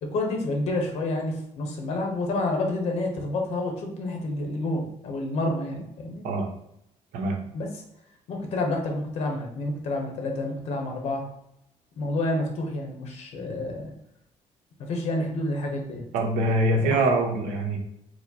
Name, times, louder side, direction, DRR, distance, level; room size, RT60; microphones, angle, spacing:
voice 1, 0.0-6.2 7.5-7.8 8.3-11.3 12.0-13.9 14.8-16.0 16.8-17.0, left 2 dB, 55° left, 3 dB, 0.8 m, -29 dB
voice 2, 16.1-17.8, right 2 dB, 90° right, 1 dB, 0.9 m, -24 dB
4.8 x 2.0 x 4.0 m, 0.77 s
cardioid pair, 170°, 13 cm